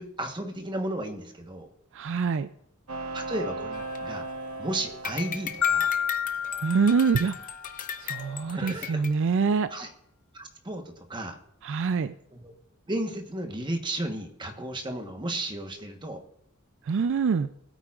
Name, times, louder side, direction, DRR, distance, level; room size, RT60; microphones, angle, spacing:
voice 1, 0.0-1.7 3.1-4.3 4.6-6.0 8.5-9.0 9.7-9.9 10.3-11.4 12.3-12.5 12.9-16.2, right 1 dB, 20° right, 5 dB, 1.2 m, -34 dB
voice 2, 1.9-2.5 6.6-7.4 8.0-9.7 11.6-12.1 16.9-17.5, right 5 dB, 60° right, 13 dB, 0.4 m, -25 dB
sound 1, 2.9-6.6, right 3 dB, 85° right, 1.2 m, -37 dB
sound 2, 3.7-4.6 5.0-9.1, left 8 dB, 40° left, 0.7 m, -38 dB
Marimba xylophone, 5.6-7.8, left 8 dB, 70° left, 0.8 m, -29 dB
16.5 x 8.9 x 2.4 m, 0.75 s
head